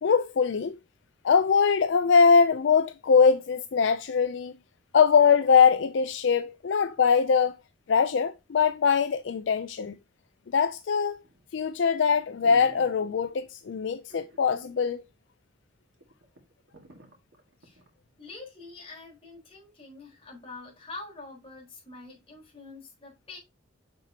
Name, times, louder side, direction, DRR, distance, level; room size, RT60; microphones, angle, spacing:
voice 1, 0.0-0.8 1.2-4.5 4.9-7.6 7.9-9.9 10.5-11.2 11.5-15.0, left 6 dB, 70° left, 0.4 m, -22 dB
sound 1, 11.2-11.6 12.0-12.1 12.4-13.5 14.1-14.8 15.1-15.2 15.7-15.8 16.0-17.9 18.3-18.4, right 2 dB, 85° right, 2.1 m, -51 dB
voice 2, 18.2-23.4, left 3 dB, 30° left, 4.2 m, -45 dB
6.9 x 6.6 x 2.8 m
head